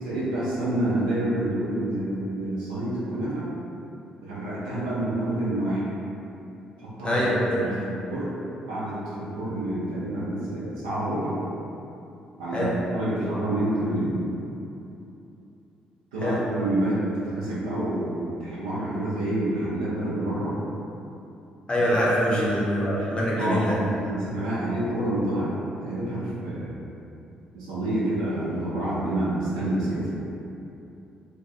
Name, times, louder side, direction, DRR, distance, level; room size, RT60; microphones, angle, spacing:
voice 1, 0.0-3.5 4.2-5.8 7.0-8.3 8.7-11.3 12.4-14.2 16.1-20.5 21.7-21.8 22.3-22.6 23.0-23.1 23.3-25.5 25.8-26.7 27.5-30.1, right 1 dB, 75° right, -9 dB, 0.5 m, -28 dB
voice 2, 7.0-7.6 12.5-12.7 16.2-16.4 21.7-23.7, equal, 25° left, -6 dB, 0.6 m, -24 dB
2.3 x 2.2 x 2.7 m, 2.8 s
figure-of-eight pair, 45°, 4 cm